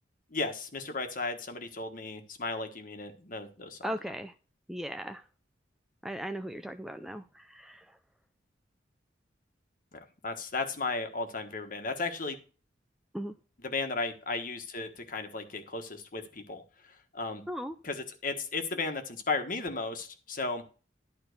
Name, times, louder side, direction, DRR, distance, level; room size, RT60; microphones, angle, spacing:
voice 1, 0.3-3.9 9.9-12.4 13.6-16.6 17.1-17.4 17.8-20.6, left 3 dB, 45° left, 1.4 m, -35 dB
voice 2, 3.8-4.3 4.7-5.2 6.0-8.0 13.1-13.3 17.5-17.8, equal, ahead, 0.3 m, -38 dB
11.5 x 3.9 x 6.5 m
head